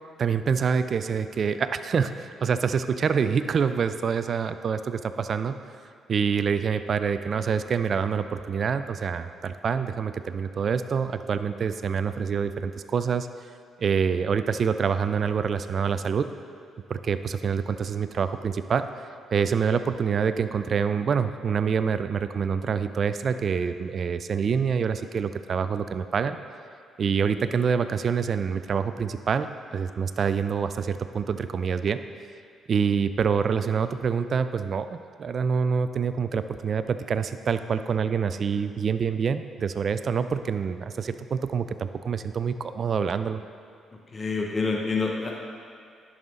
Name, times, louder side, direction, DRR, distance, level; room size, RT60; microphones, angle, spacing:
voice 1, 0.2-5.6 6.1-13.3 13.8-16.3 16.9-18.9 19.3-26.4 27.0-32.0 32.7-43.4, right 6 dB, 50° right, 11 dB, 0.4 m, -26 dB
voice 2, 44.1-45.3, left 4 dB, 30° left, -1 dB, 0.9 m, -27 dB
10.5 x 5.6 x 3.7 m, 2.3 s
cardioid pair, 90°, 0 cm